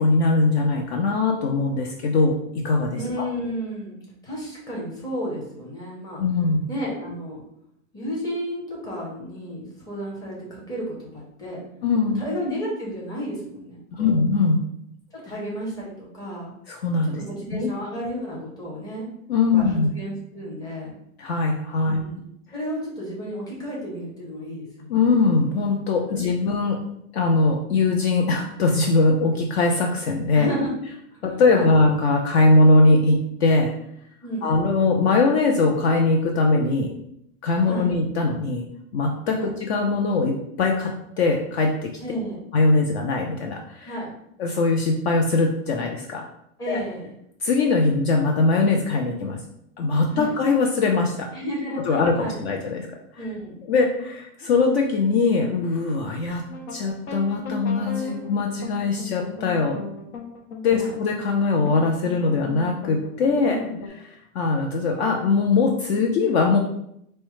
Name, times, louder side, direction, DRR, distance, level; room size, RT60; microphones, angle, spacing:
voice 1, 0.0-3.2 6.2-6.6 11.8-12.2 13.9-14.6 16.7-17.2 17.6-17.7 19.3-19.9 21.2-22.0 24.9-26.8 27.1-30.5 31.2-33.7 34.4-36.9 37.4-38.6 38.9-41.9 42.5-43.9 44.4-46.2 46.7-46.8 47.4-49.4 49.8-51.3 51.9-52.9 53.1-53.3 53.7-56.4 56.7-59.8 60.6-63.6 64.1-66.6, left 3 dB, 50° left, 2 dB, 0.5 m, -21 dB
voice 2, 2.9-4.0 4.2-6.2 6.7-7.4 7.9-11.6 12.1-14.2 15.2-16.5 17.0-19.1 19.5-21.0 21.8-22.3 22.5-25.0 26.1-26.2 30.3-30.7 31.3-31.7 34.2-34.6 37.6-37.9 39.3-39.5 42.0-42.4 43.9-44.1 46.6-47.1 50.1-50.3 51.3-52.4 53.2-53.6 60.7-60.9 63.4-63.8, equal, 10° left, -4 dB, 0.7 m, -32 dB
sound 1, 56.5-63.9, left 4 dB, 70° left, 0.9 m, -36 dB
4.4 x 2.1 x 3.0 m, 0.76 s
supercardioid pair, 150°, 43 cm